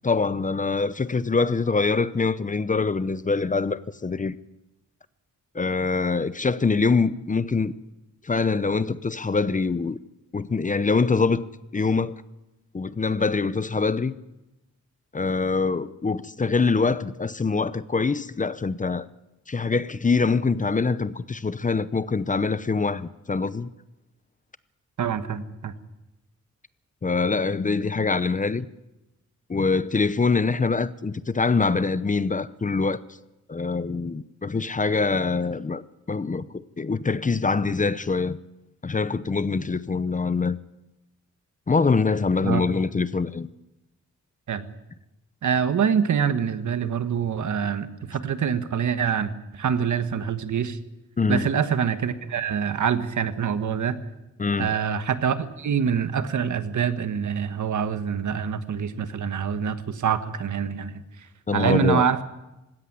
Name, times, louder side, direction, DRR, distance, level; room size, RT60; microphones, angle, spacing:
voice 1, 0.0-4.4 5.5-7.8 8.2-10.0 10.3-11.4 11.7-12.1 12.7-14.2 15.1-19.1 19.5-23.7 27.0-28.7 29.5-33.0 33.5-38.4 38.8-40.6 41.7-43.5 51.2-51.5 54.4-54.7 61.5-62.1, left 4 dB, 25° left, 0.7 m, -24 dB
voice 2, 25.0-25.7 42.4-42.6 44.5-44.7 45.4-50.8 51.3-54.0 54.6-61.0 61.5-62.2, right 7 dB, 80° right, 1.5 m, -25 dB
19.5 x 16.5 x 9.7 m
wide cardioid pair, 115°, 29 cm